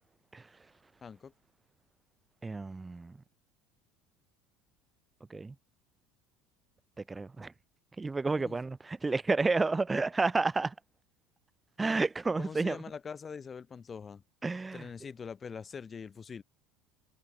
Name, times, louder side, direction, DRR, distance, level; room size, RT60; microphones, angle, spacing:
voice 1, 1.0-1.3 8.4-8.6 12.4-14.2 14.7-16.4, left 6 dB, 25° left, 1.0 m, -43 dB
voice 2, 2.4-3.1 5.3-5.5 7.1-7.5 8.0-10.7 11.8-12.8 14.4-14.9, right 3 dB, 15° right, 0.6 m, -30 dB
supercardioid pair, 120°, 0 cm